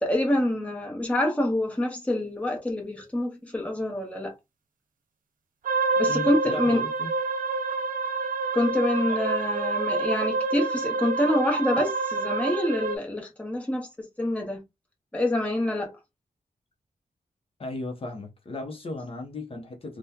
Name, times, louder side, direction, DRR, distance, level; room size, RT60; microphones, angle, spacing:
voice 1, 0.0-4.3 6.0-6.9 8.5-14.6 15.1-16.0, left 1 dB, 10° left, 0.9 m, -26 dB
sound 1, 5.6-13.0, right 3 dB, 75° right, 0.6 m, -27 dB
voice 2, 6.1-7.1 17.6-20.0, left 2 dB, 40° left, 0.7 m, -36 dB
3.5 x 2.2 x 2.8 m
wide cardioid pair, 135°, 14 cm